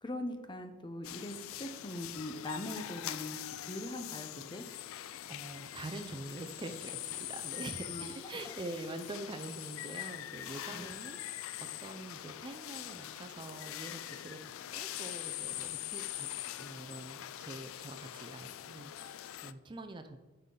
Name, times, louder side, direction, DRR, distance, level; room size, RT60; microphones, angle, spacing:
voice 1, 0.0-4.6 7.8-8.5 10.7-10.9, left 1 dB, 20° left, 7 dB, 0.6 m, -42 dB
sound 1, 1.0-19.5, left 13 dB, 65° left, 0.3 m, -43 dB
voice 2, 5.2-16.3 16.6-20.2, right 2 dB, 20° right, 7 dB, 0.4 m, -45 dB
9.3 x 5.6 x 3.8 m, 1.1 s
head